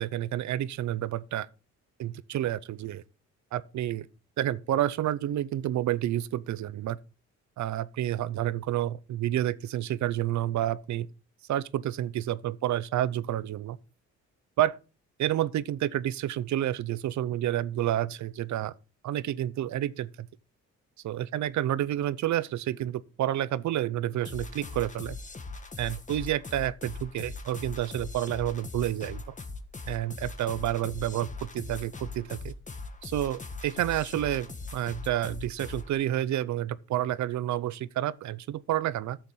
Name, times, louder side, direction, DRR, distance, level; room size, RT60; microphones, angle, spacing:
voice 1, 0.0-1.5 2.0-3.0 3.5-4.1 4.4-7.0 7.6-11.1 11.5-13.8 14.6-14.8 15.2-18.7 19.0-20.3 21.0-25.2 25.8-29.3 29.9-32.5 33.0-34.5 34.7-39.2, right 12 dB, 70° right, 0.8 m, -29 dB
sound 1, 24.2-36.0, left 3 dB, 25° left, 1.7 m, -41 dB
13.5 x 7.0 x 3.9 m
cardioid pair, 90°, 30 cm